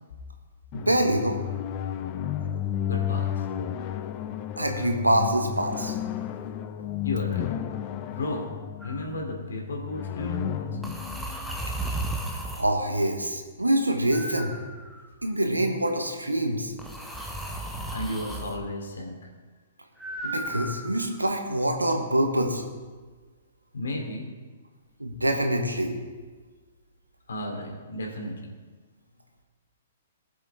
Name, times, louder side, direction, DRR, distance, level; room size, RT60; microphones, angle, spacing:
sound 1, 0.7-12.4, left 10 dB, 35° left, 0.7 m, -33 dB
voice 1, 0.7-1.4 4.6-6.0 12.6-14.6 15.2-16.7 20.2-22.6 25.0-25.9, right 1 dB, 85° right, 3 dB, 1.6 m, -25 dB
voice 2, 2.8-3.4 7.0-7.4 8.1-8.5 8.8-11.0 17.9-19.2 23.7-24.3 27.3-28.3, left 1 dB, 65° left, 0 dB, 3.1 m, -33 dB
sound 2, 8.8-9.1 10.8-12.7 14.1-15.2 16.8-18.6 20.0-21.2, right 1 dB, ahead, 1.2 m, -34 dB
19.0 x 7.5 x 3.6 m, 1.4 s
figure-of-eight pair, 115°, 0 cm